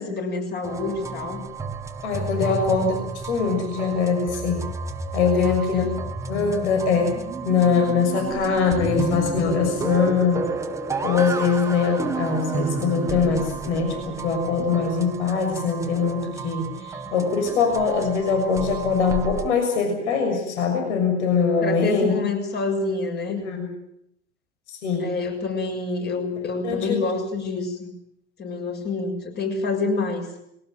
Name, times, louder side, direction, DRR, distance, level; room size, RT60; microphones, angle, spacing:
voice 1, 0.0-1.4 2.4-2.6 5.3-5.9 14.6-14.7 21.6-23.4 25.0-27.9 28.4-30.3, left 3 dB, 30° left, 3 dB, 6.9 m, -27 dB
sound 1, 0.6-19.5, right 4 dB, 10° right, 1.9 m, -31 dB
voice 2, 2.0-3.0 3.2-4.6 5.1-5.9 6.3-7.2 7.4-10.5 11.0-22.1 23.4-23.7 24.7-25.1 26.6-27.0, left 5 dB, 70° left, 4 dB, 6.5 m, -22 dB
22.0 x 18.0 x 9.0 m, 0.77 s
hypercardioid pair, 110°, 36 cm